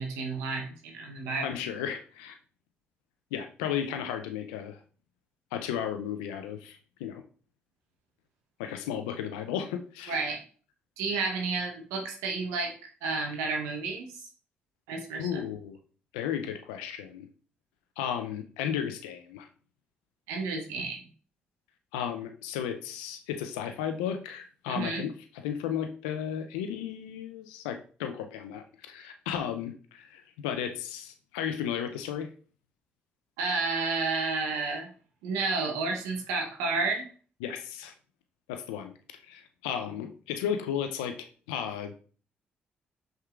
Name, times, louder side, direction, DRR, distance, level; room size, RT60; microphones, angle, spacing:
voice 1, 0.0-1.5 10.1-10.4 11.0-12.7 13.0-14.3 14.9-15.4 20.3-21.0 24.7-25.0 33.4-34.9 35.2-37.1, right 4 dB, 85° right, 1 dB, 0.7 m, -31 dB
voice 2, 1.4-2.4 3.3-4.8 5.5-7.2 8.6-10.3 15.2-15.8 16.1-17.3 18.0-19.5 21.9-25.1 25.4-32.3 37.4-37.9 38.5-38.9 39.2-42.0, left 9 dB, 90° left, 7 dB, 0.4 m, -34 dB
5.6 x 3.6 x 2.3 m, 0.40 s
hypercardioid pair, 40°, 5 cm